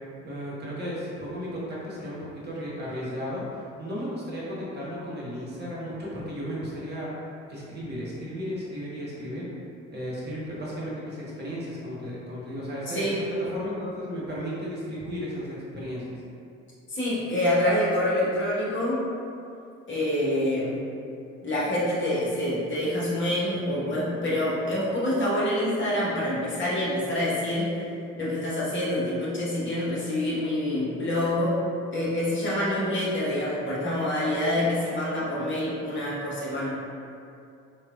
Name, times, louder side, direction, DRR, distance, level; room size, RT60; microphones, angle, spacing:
voice 1, 0.2-7.1 7.5-9.5 9.9-16.2, equal, 30° right, -7 dB, 0.9 m, -34 dB
voice 2, 12.9-13.2 16.9-19.0 19.9-20.8 21.4-27.8 28.2-31.6 31.9-36.8, left 1 dB, 30° left, -8 dB, 1.0 m, -26 dB
3.2 x 2.3 x 2.3 m, 2.6 s
figure-of-eight pair, 50°, 37 cm